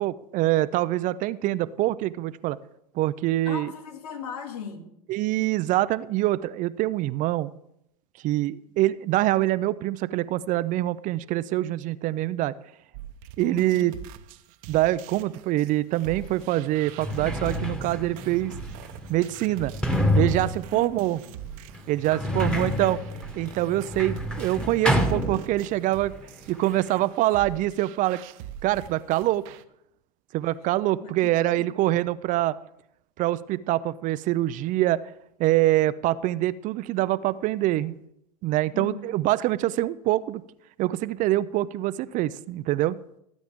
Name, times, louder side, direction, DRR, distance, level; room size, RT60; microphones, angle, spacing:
voice 1, 0.0-2.6 2.9-3.7 5.1-7.5 8.2-12.5 13.4-13.9 14.7-18.5 19.1-19.7 20.1-21.2 21.9-23.0 23.4-26.1 26.5-28.2 28.6-29.5 30.3-32.6 33.2-35.0 35.4-38.0 38.4-40.4 40.8-43.0, right 15 dB, 45° right, 0.5 m, -25 dB
voice 2, 3.4-4.9 13.4-13.9 20.7-21.4 22.2-22.8 30.3-30.4 31.0-31.8 38.7-39.2, left 6 dB, 80° left, 2.4 m, -39 dB
sound 1, 12.9-29.6, right 10 dB, 60° right, 0.9 m, -44 dB
Sliding door, 16.1-16.2 16.8-25.9 26.2-27.0, left 1 dB, 5° left, 1.5 m, -29 dB
18.0 x 9.1 x 3.7 m
hypercardioid pair, 105°, 19 cm